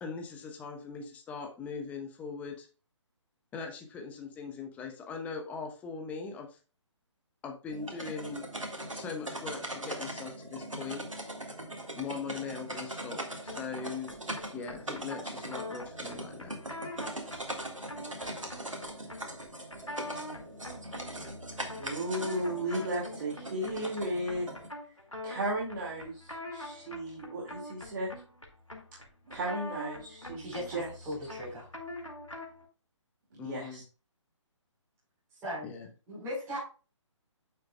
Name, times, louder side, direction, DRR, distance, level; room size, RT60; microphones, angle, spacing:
voice 1, 0.0-2.7 3.5-6.6 7.4-8.4 8.9-11.0 12.0-14.1 14.5-16.6 33.4-33.8 35.6-35.9, left 5 dB, 10° left, 3 dB, 0.9 m, -40 dB
sound 1, 7.7-24.7, right 1 dB, 85° right, 1.7 m, -41 dB
sound 2, 13.5-32.7, left 1 dB, 90° left, 2.2 m, -44 dB
voice 2, 21.6-24.5 25.2-28.1 29.3-30.9 33.3-33.8, right 1 dB, 40° right, -3 dB, 2.3 m, -35 dB
voice 3, 30.4-31.7 35.4-35.7 36.1-36.6, left 1 dB, 15° right, -6 dB, 4.4 m, -38 dB
8.9 x 6.7 x 2.3 m, 0.35 s
figure-of-eight pair, 140°, 16 cm